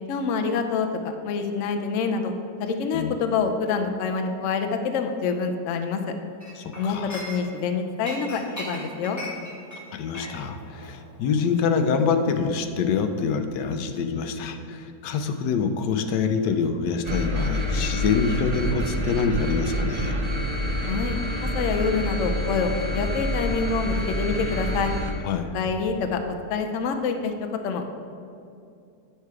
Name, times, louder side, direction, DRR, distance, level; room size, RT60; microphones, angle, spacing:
voice 1, 0.1-0.9 1.2-2.3 2.6-6.0 6.8-9.2 20.8-24.9 25.5-26.2 26.5-27.3 27.6-27.9, left 5 dB, 65° left, 5 dB, 0.8 m, -26 dB
Chink clink, 6.4-7.7 8.0-12.6 12.9-13.1, equal, 15° left, 0.9 m, -39 dB
voice 2, 6.6-7.2 9.9-20.2 25.2-25.5, left 5 dB, 90° left, 7 dB, 1.3 m, -25 dB
sound 1, 17.0-25.1, equal, 55° right, 0.4 m, -27 dB
9.7 x 4.7 x 4.7 m, 2.5 s
omnidirectional pair, 1.8 m